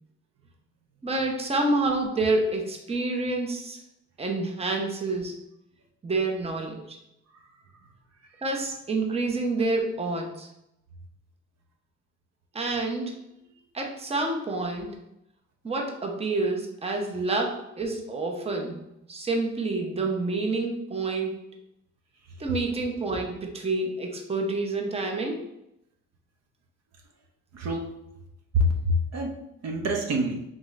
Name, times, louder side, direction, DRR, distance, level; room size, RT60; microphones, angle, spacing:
voice 1, 1.0-3.8 4.2-5.4 6.0-7.0 8.4-10.5 12.5-13.2 13.7-15.0 15.6-18.8 19.1-21.4 22.4-25.5, right 2 dB, 20° right, 2 dB, 0.8 m, -28 dB
voice 2, 27.5-27.9 28.5-30.4, equal, 60° right, 1 dB, 0.7 m, -27 dB
3.6 x 3.6 x 3.2 m, 0.83 s
cardioid pair, 90°, 30 cm